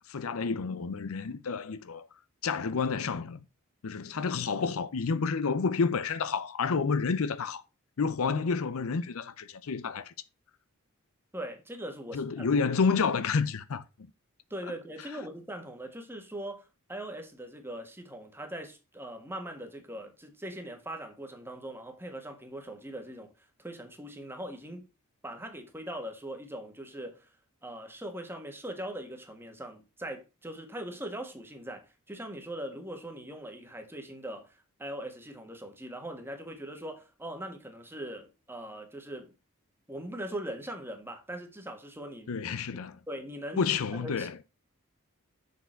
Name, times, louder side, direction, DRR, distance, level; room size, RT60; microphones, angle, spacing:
voice 1, 0.1-2.1 2.4-3.4 3.8-7.6 8.0-10.1 12.1-13.8 42.3-43.0 43.6-44.4, left 5 dB, 70° left, 0.5 m, -29 dB
voice 2, 11.3-12.5 14.5-24.9 25.2-27.3 27.6-39.3 39.9-42.3 42.7-42.8 43.1-43.6 43.9-44.3, right 1 dB, 10° right, 1.5 m, -41 dB
6.9 x 6.7 x 4.4 m
head